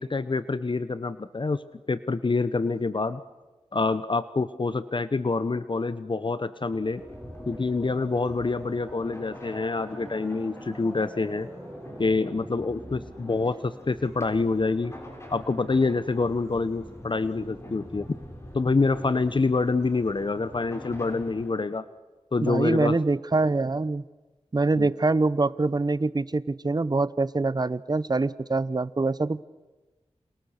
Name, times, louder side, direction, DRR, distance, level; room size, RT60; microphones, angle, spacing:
voice 1, 0.0-1.6 1.9-3.2 3.7-7.0 7.5-11.5 12.0-14.9 15.3-18.1 18.5-21.9 22.3-23.0 24.7-24.9, left 3 dB, 45° left, 14 dB, 0.9 m, -26 dB
sound 1, 6.6-13.1, equal, 10° right, 6.7 m, -44 dB
sound 2, 6.7-21.5, equal, 25° left, 6.5 m, -45 dB
voice 2, 22.4-24.0 24.5-29.4, right 3 dB, 35° right, 18 dB, 0.8 m, -24 dB
29.5 x 26.5 x 6.6 m, 1.2 s
wide cardioid pair, 55°, 11 cm